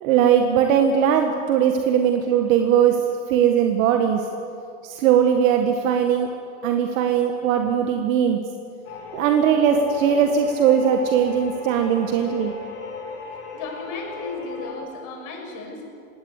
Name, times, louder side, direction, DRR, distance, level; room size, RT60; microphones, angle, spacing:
voice 1, 0.0-3.0 3.3-4.3 4.8-6.3 6.6-8.4 9.1-12.5, right 8 dB, 75° right, 4 dB, 1.8 m, -19 dB
sound 1, 8.8-14.7, left 4 dB, 85° left, 5.5 m, -36 dB
voice 2, 13.5-15.8, left 3 dB, 50° left, 1 dB, 6.6 m, -34 dB
22.5 x 17.5 x 8.3 m, 2.6 s
supercardioid pair, 120°, 40 cm